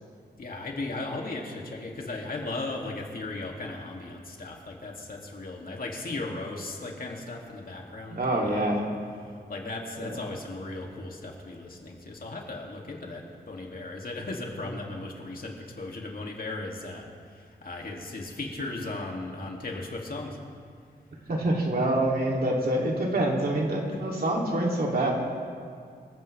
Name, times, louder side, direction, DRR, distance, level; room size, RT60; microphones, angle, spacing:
voice 1, 0.4-8.8 9.5-17.0 17.3-20.4, left 2 dB, 55° left, -1 dB, 2.5 m, -36 dB
voice 2, 8.1-8.8 10.0-10.2 14.6-14.8 21.3-25.1, right 1 dB, 60° right, -2 dB, 2.9 m, -26 dB
26.0 x 15.0 x 3.4 m, 2.2 s
wide cardioid pair, 125°, 17 cm